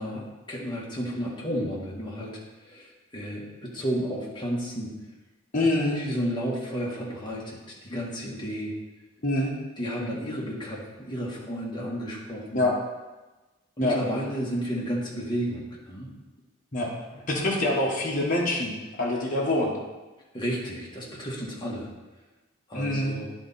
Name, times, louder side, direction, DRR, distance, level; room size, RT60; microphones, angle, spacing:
voice 1, 0.0-4.9 5.9-8.7 9.8-12.7 13.8-16.1 20.3-21.9 22.7-23.3, equal, 20° left, -4 dB, 1.5 m, -32 dB
voice 2, 5.5-6.0 9.2-9.5 12.5-12.7 13.8-14.0 16.7-16.9 17.3-18.7 19.0-19.7 22.7-23.1, left 1 dB, 40° left, -3 dB, 1.3 m, -25 dB
10.0 x 4.2 x 4.1 m, 1.2 s
head